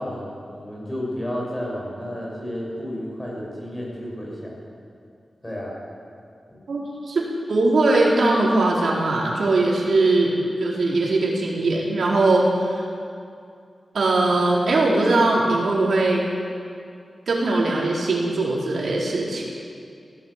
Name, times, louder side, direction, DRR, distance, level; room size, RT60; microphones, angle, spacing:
voice 1, 0.0-4.6 5.4-5.8, equal, 15° left, -3 dB, 7.0 m, -31 dB
voice 2, 6.7-7.2 7.5-12.8 13.9-16.2 17.3-19.4, right 2 dB, 75° right, -3 dB, 4.4 m, -20 dB
19.5 x 16.0 x 8.4 m, 2.4 s
wide cardioid pair, 135°, 0 cm